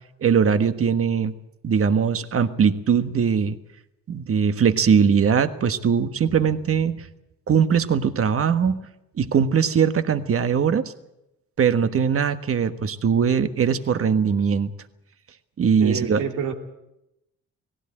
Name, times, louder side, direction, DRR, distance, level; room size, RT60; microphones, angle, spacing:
voice 1, 0.2-1.3 1.6-3.6 4.1-7.1 7.5-8.8 9.2-10.9 11.6-14.7 15.6-16.2, right 7 dB, 50° right, 10 dB, 1.4 m, -21 dB
voice 2, 15.8-16.5, right 6 dB, 80° right, 4 dB, 2.7 m, -27 dB
19.0 x 16.5 x 8.8 m, 0.87 s
cardioid pair, 90°, 30 cm